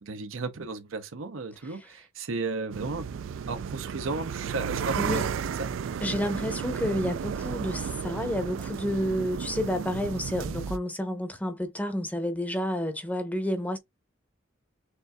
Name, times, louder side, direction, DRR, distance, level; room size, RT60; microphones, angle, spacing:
voice 1, 0.0-3.1 3.5-5.7, right 3 dB, 85° right, 0.7 m, -34 dB
sound 1, 2.7-10.8, right 7 dB, 70° right, 0.3 m, -33 dB
voice 2, 4.9-5.3 6.0-13.8, left 1 dB, 10° left, 0.7 m, -30 dB
6.6 x 2.6 x 2.3 m
head